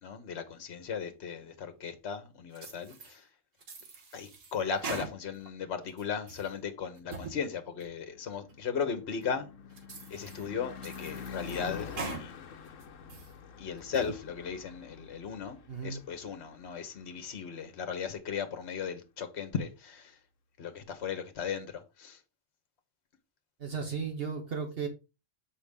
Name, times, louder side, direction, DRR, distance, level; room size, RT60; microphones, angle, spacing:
voice 1, 0.0-3.3 4.1-9.5 10.1-12.3 13.6-15.6 15.8-20.2 20.6-22.2, left 6 dB, 60° left, 1.3 m, -36 dB
sound 1, 2.6-3.2 3.6-5.5 5.9-6.5 7.0-7.4 7.8-7.9 8.5-8.6 9.2-9.3 9.8-10.5 10.8-12.3 12.7-13.3 13.8-14.2, right 4 dB, 90° right, 1.6 m, -42 dB
Car passing by / Truck / Engine, 7.5-17.7, left 7 dB, 80° left, 1.1 m, -47 dB
voice 2, 15.7-16.0 23.6-24.9, right 5 dB, 50° right, 1.2 m, -35 dB
7.0 x 5.1 x 3.5 m
omnidirectional pair, 1.3 m